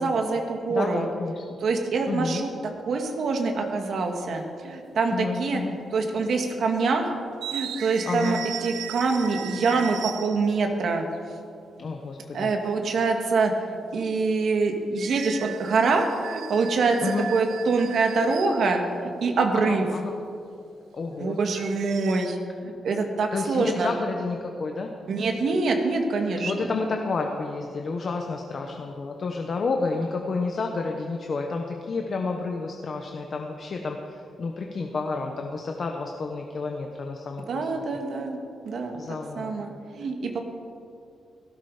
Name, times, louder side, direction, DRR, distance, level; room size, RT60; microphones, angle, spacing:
voice 1, 0.0-1.1 1.6-2.5 2.9-5.6 5.9-7.2 7.5-11.1 12.3-13.5 13.9-19.9 21.2-22.4 22.6-23.9 25.1-26.7 37.5-39.0 39.4-40.4, right 4 dB, 55° right, 3 dB, 2.0 m, -25 dB
voice 2, 0.7-1.4 2.1-2.4 5.1-5.8 8.1-8.4 11.8-12.5 17.0-17.3 19.5-20.2 20.9-21.4 23.3-24.9 26.4-37.8 39.0-39.5, left 4 dB, 40° left, 2 dB, 1.1 m, -30 dB
sound 1, 3.0-3.3 4.5-4.6 5.6-5.9 6.2-6.3 7.3-10.6 15.0-18.8 21.6-22.3, right 10 dB, 75° right, 0.5 m, -37 dB
17.5 x 16.5 x 5.0 m, 2.4 s
wide cardioid pair, 175°, 0 cm